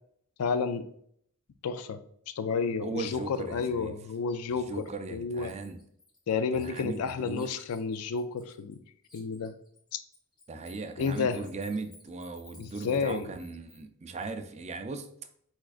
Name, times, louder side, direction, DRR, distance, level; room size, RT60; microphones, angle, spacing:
voice 1, 0.4-0.9 1.6-2.0 2.4-4.8 5.1-5.5 6.3-8.8 9.1-9.5 9.9-10.0 11.0-11.4 12.6-13.3, left 5 dB, 75° left, 11 dB, 0.4 m, -31 dB
voice 2, 2.8-3.9 4.5-5.8 6.5-7.5 10.5-15.1, right 3 dB, 30° right, 8 dB, 0.4 m, -38 dB
Bird, 4.8-4.9 5.3-8.8 9.0-13.8, left 3 dB, 20° left, 1.2 m, -56 dB
4.7 x 4.4 x 2.4 m, 0.68 s
head